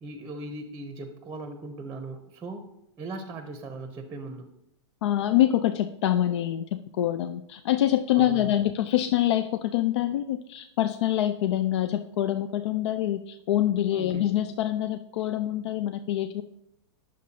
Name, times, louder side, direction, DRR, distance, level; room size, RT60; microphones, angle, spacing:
voice 1, 0.0-2.6 3.0-4.5 8.1-8.5 13.9-14.3, right 2 dB, 15° right, 7 dB, 0.7 m, -39 dB
voice 2, 5.0-16.4, left 12 dB, 65° left, 9 dB, 0.5 m, -25 dB
9.3 x 6.3 x 2.9 m, 0.81 s
hypercardioid pair, 125°, 16 cm